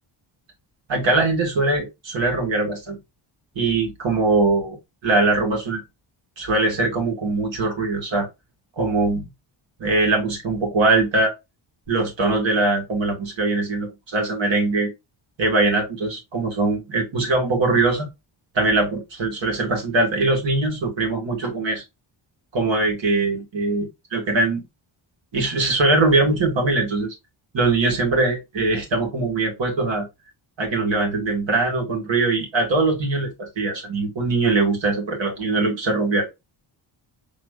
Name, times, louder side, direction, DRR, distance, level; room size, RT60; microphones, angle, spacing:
voice 1, 0.9-3.0 3.6-4.8 5.0-5.8 6.4-8.3 8.8-9.3 9.8-11.3 11.9-14.9 15.4-18.1 18.5-21.8 22.5-24.6 25.3-27.1 27.5-30.1 30.6-36.3, right 3 dB, 65° right, 2.0 m, -21 dB
5.2 x 3.4 x 2.2 m
wide cardioid pair, 140°, 48 cm